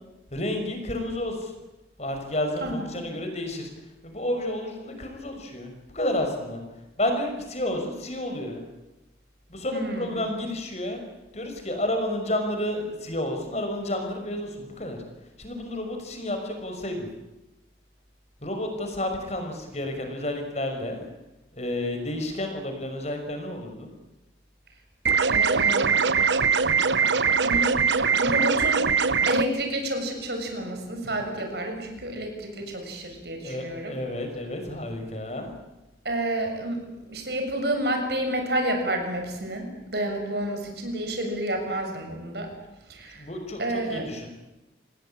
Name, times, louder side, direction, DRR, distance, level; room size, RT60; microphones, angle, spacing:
voice 1, 0.3-1.5 2.0-3.7 4.0-6.6 7.0-8.6 9.5-11.0 11.3-15.0 15.4-17.1 18.4-21.1 21.5-23.9 33.4-35.5 43.2-44.3, left 1 dB, 40° left, 5 dB, 5.8 m, -30 dB
voice 2, 2.6-2.9 9.7-10.2 25.3-26.0 27.4-27.7 28.2-28.9 29.3-34.0 36.1-36.8 37.1-42.5 42.9-43.2 43.6-44.0, right 1 dB, 65° right, 4 dB, 6.9 m, -29 dB
sound 1, 25.1-29.4, right 5 dB, 85° right, 1.2 m, -22 dB
28.0 x 19.5 x 9.0 m, 0.99 s
head